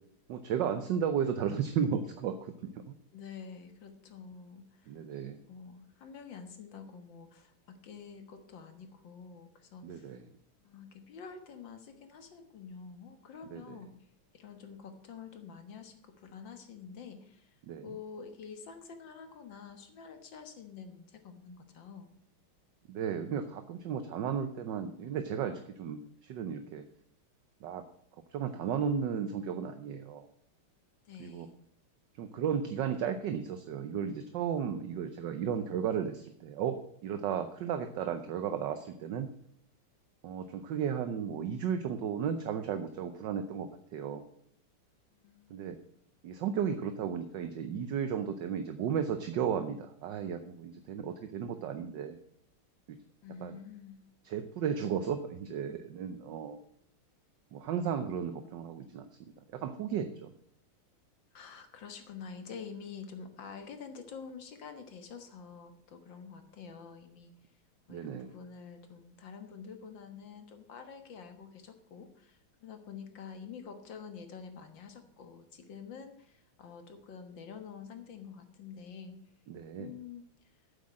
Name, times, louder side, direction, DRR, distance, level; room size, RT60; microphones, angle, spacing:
voice 1, 0.3-3.0 4.9-5.4 9.8-10.2 13.5-13.8 17.7-17.9 22.9-26.8 27.6-27.8 28.3-30.3 31.2-31.5 32.2-39.3 40.2-44.2 45.5-45.8 46.2-52.2 52.9-53.0 53.4-53.6 54.2-56.6 57.5-59.1 59.5-60.3 67.9-68.3 79.5-79.9, right 7 dB, 65° right, 9 dB, 1.3 m, -34 dB
voice 2, 3.1-5.0 5.5-10.1 10.6-13.9 14.3-22.1 31.1-31.5 45.1-46.0 53.2-54.0 61.3-67.3 67.9-79.2 79.8-80.2, left 6 dB, 60° left, 7 dB, 2.0 m, -48 dB
8.7 x 8.0 x 7.5 m, 0.68 s
omnidirectional pair, 2.3 m